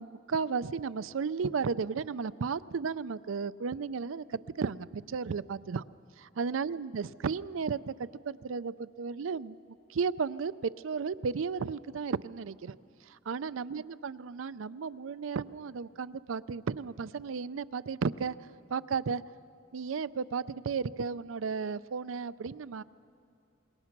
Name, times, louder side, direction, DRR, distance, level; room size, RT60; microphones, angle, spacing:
voice 1, 0.0-5.8 6.2-9.6 9.9-12.8 13.1-18.4 18.7-19.2 19.7-22.8, right 5 dB, 85° right, 16 dB, 0.5 m, -34 dB
26.5 x 22.0 x 6.0 m, 2.5 s
head